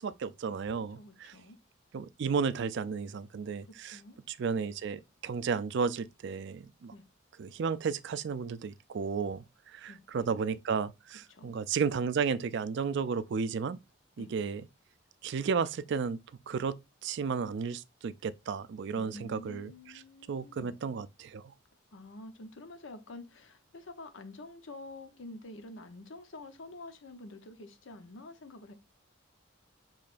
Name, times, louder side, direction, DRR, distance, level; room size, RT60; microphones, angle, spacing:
voice 1, 0.0-1.3 1.9-4.0 4.3-6.9 7.4-13.8 14.2-14.6 15.2-16.2 16.5-16.8 17.0-19.7 20.3-21.5, right 5 dB, 60° right, 0.4 m, -33 dB
voice 2, 0.9-1.6 3.7-4.2 6.9-7.1 9.8-10.4 11.3-11.6 14.2-14.3 18.9-20.8 21.9-28.7, left 2 dB, 70° left, 0.8 m, -48 dB
6.5 x 3.2 x 2.5 m
head